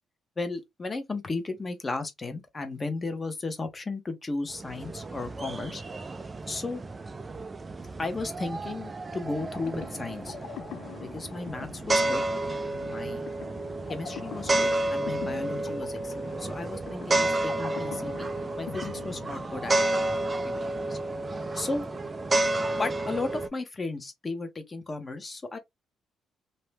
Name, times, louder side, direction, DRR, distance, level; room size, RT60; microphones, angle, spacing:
voice 1, 0.4-5.8 6.5-6.8 8.0-10.4 11.0-12.2 12.8-13.3 13.9-18.3 18.6-19.9 20.4-21.0 21.5-21.8 22.7-25.6, left 3 dB, 25° left, 0.8 m, -35 dB
sound 1, 4.5-23.5, right 2 dB, 25° right, 0.4 m, -31 dB
sound 2, 9.4-20.0, left 8 dB, 75° left, 0.6 m, -44 dB
2.7 x 2.1 x 3.3 m
cardioid pair, 105°, 0 cm